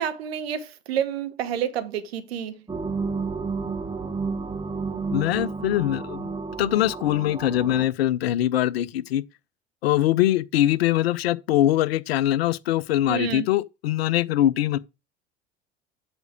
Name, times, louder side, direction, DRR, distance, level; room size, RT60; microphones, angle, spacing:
voice 1, 0.0-2.6 13.1-13.5, right 9 dB, 65° right, 1.1 m, -29 dB
sound 1, 2.7-7.9, right 4 dB, 15° right, 1.0 m, -31 dB
voice 2, 5.1-6.3 6.6-9.2 9.8-14.8, left 13 dB, 65° left, 0.6 m, -22 dB
8.2 x 5.2 x 4.9 m
figure-of-eight pair, 70°, 33 cm